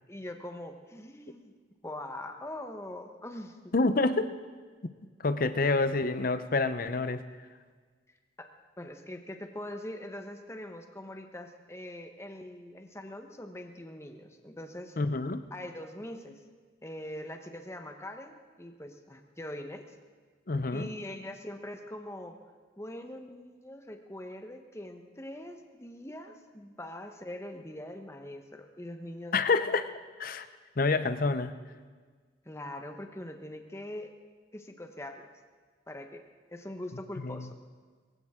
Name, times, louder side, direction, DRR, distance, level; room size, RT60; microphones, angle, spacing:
voice 1, 0.1-1.5 1.8-3.7 8.4-8.5 8.8-15.0 15.5-16.4 16.8-19.9 20.7-22.4 22.8-29.4 32.4-34.1 34.5-35.3 35.9-36.2 36.5-37.5, left 1 dB, 15° left, 5 dB, 1.0 m, -42 dB
voice 2, 3.7-4.4 5.2-7.2 15.0-15.4 20.5-20.9 29.3-30.5 30.8-31.5 37.2-37.5, left 3 dB, 50° left, 11 dB, 0.7 m, -28 dB
22.0 x 15.5 x 3.7 m, 1.5 s
head